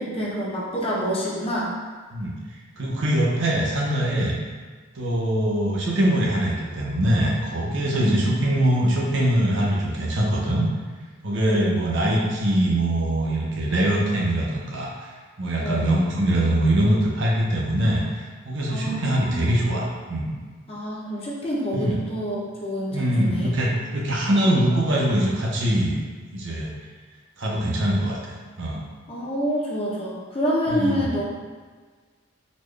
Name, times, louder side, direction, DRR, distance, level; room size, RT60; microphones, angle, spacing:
voice 1, 0.0-1.7 8.0-8.3 11.5-12.3 15.6-16.0 18.7-19.5 20.7-23.5 29.1-31.2, equal, 30° left, -5 dB, 0.6 m, -27 dB
voice 2, 2.8-4.4 4.9-10.6 11.2-15.1 15.4-20.3 21.7-22.0 22.9-26.0 26.3-26.7 27.4-28.8 30.7-31.2, right 1 dB, 65° right, -3 dB, 0.7 m, -23 dB
4.1 x 2.3 x 3.2 m, 1.5 s
head